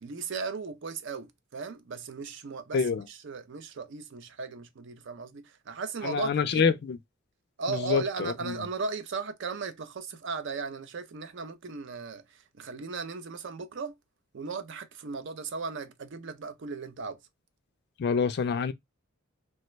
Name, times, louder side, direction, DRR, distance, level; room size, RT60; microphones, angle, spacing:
voice 1, 0.0-2.8 3.1-6.7 7.6-13.9 14.3-17.2, right 4 dB, 60° right, 0.5 m, -36 dB
voice 2, 2.7-3.0 6.0-7.0 7.7-8.7 18.0-18.7, left 6 dB, 50° left, 0.3 m, -27 dB
3.2 x 2.1 x 3.0 m
head